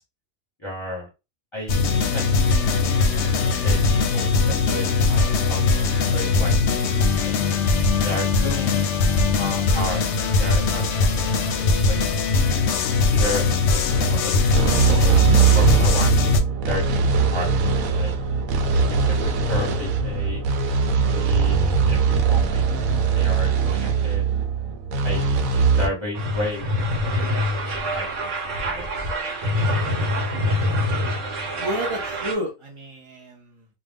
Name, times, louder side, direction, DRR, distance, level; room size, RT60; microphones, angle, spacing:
voice 1, 0.6-1.1 1.5-2.2 3.6-6.6 7.2-7.4 8.0-8.9 9.4-10.0 10.4-12.3 13.1-15.3 15.5-16.1 16.6-17.5 17.9-18.1 18.8-20.4 21.1-21.6 21.9-22.8 23.1-24.2 25.0-26.7 27.0-27.5 27.9-28.8, left 1 dB, 25° left, -4 dB, 0.7 m, -33 dB
sound 1, 1.7-16.4, left 4 dB, 70° left, 0.8 m, -20 dB
sound 2, 13.9-25.9, right 5 dB, 90° right, 1.0 m, -21 dB
sound 3, 26.1-32.3, left 1 dB, 70° right, 1.2 m, -25 dB
voice 2, 31.6-33.7, equal, 45° right, -1 dB, 0.4 m, -31 dB
2.5 x 2.2 x 3.5 m, 0.26 s
omnidirectional pair, 1.4 m